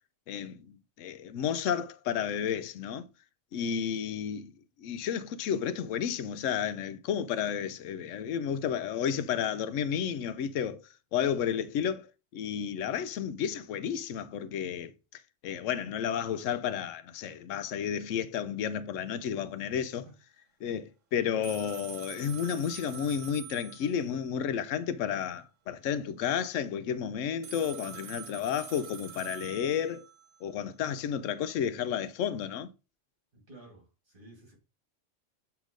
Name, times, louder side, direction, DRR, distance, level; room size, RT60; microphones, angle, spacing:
voice 1, 0.3-0.7 1.0-3.1 3.5-4.5 4.8-10.8 11.1-14.9 15.4-20.1 20.6-30.1 30.4-32.7, left 8 dB, 90° left, 1.0 m, -32 dB
voice 2, 19.6-20.1 33.3-34.5, right 1 dB, 45° right, 2.5 m, -53 dB
sound 1, 21.4-24.3 27.4-30.4, right 9 dB, 85° right, 1.2 m, -45 dB
7.7 x 2.9 x 5.0 m
omnidirectional pair, 1.3 m